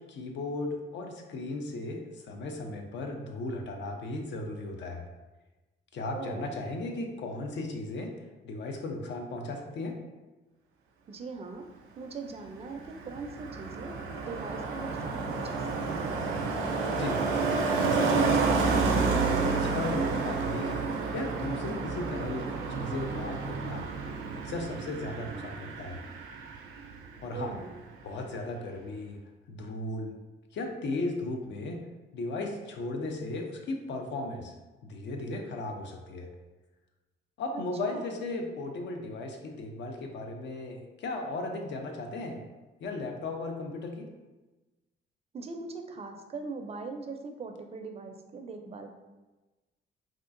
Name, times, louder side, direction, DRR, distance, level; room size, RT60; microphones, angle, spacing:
voice 1, 0.1-5.0 5.9-8.1 8.4-10.0 16.9-17.2 17.7-20.9 21.1-23.8 24.3-26.0 27.2-27.6 28.0-29.2 29.5-30.1 30.5-31.8 32.1-34.5 34.8-36.3 37.4-42.4 42.8-44.1, left 2 dB, 65° left, 3 dB, 0.5 m, -36 dB
voice 2, 6.1-6.5 11.1-11.7 12.0-13.9 14.2-16.2 27.3-27.7 37.5-38.1 45.3-48.9, right 4 dB, 30° right, 5 dB, 0.4 m, -41 dB
Car passing by, 12.4-27.2 27.5-27.8, right 4 dB, 85° right, 0.5 m, -30 dB
3.6 x 2.4 x 2.5 m, 1.1 s
cardioid pair, 90°, 20 cm